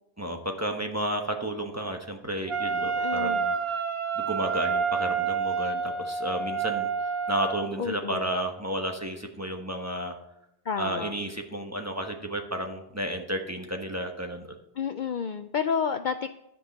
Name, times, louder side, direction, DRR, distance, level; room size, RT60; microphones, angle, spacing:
voice 1, 0.2-3.8 4.1-10.2 10.8-14.5, right 1 dB, 15° right, 4 dB, 1.1 m, -32 dB
Wind instrument woodwind instrument, 2.5-7.7, right 5 dB, 65° right, 1.2 m, -29 dB
voice 2, 3.0-3.4 7.8-8.3 10.6-11.1 14.8-16.3, left 6 dB, 55° left, 9 dB, 0.6 m, -30 dB
13.0 x 5.4 x 6.7 m, 0.83 s
omnidirectional pair, 1.1 m